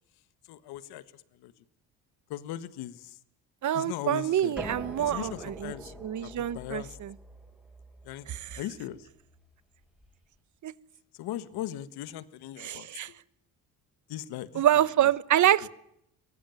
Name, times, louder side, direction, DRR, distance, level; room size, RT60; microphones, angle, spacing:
voice 1, 0.5-1.0 1.4-1.5 2.3-3.1 3.7-4.5 5.0-5.9 6.2-6.9 8.0-8.3 8.6-9.0 11.2-12.9 14.1-14.6, left 12 dB, 80° left, 14 dB, 1.6 m, -38 dB
voice 2, 3.6-5.7 6.0-7.1 8.3-8.6 10.6-10.7 12.6-13.1 14.5-15.7, right 11 dB, 50° right, 18 dB, 1.1 m, -26 dB
sound 1, 4.6-10.1, equal, 5° right, 5.6 m, -45 dB
24.0 x 18.0 x 9.2 m, 0.77 s
cardioid pair, 105°, 38 cm